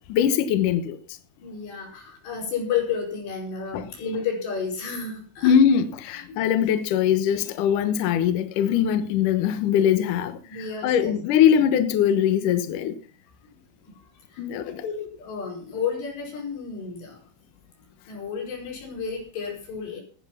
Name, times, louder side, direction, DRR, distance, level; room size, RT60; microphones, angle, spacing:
voice 1, 0.1-1.0 3.7-3.8 5.4-10.4 10.8-12.9 14.4-14.8, left 9 dB, 90° left, 1.8 m, -21 dB
voice 2, 1.4-5.5 6.3-6.4 10.5-11.1 14.3-17.2 18.1-20.0, left 6 dB, 60° left, 6.9 m, -31 dB
15.5 x 9.9 x 5.7 m
omnidirectional pair, 5.6 m